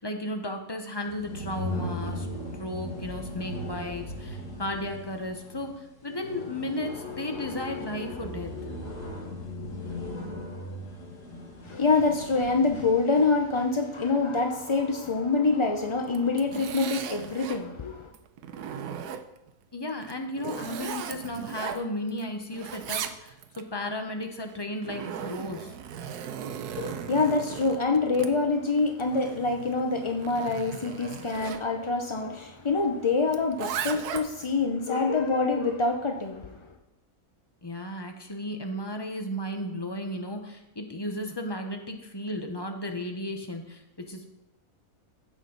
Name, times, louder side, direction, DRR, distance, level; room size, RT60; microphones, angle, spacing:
voice 1, 0.0-2.3 2.5-8.5 19.7-25.7 37.6-44.3, left 1 dB, 20° left, 0.9 m, -34 dB
sound 1, 1.0-13.0, left 1 dB, 90° left, 2.5 m, -38 dB
voice 2, 11.6-18.1 26.7-36.6, left 3 dB, 45° left, 0.3 m, -26 dB
Zipper (clothing), 16.0-17.6 18.1-19.5 20.0-22.2 22.5-23.6 24.5-31.6 33.3-34.5, right 8 dB, 80° right, 1.2 m, -37 dB
15.0 x 6.1 x 4.0 m
omnidirectional pair, 1.6 m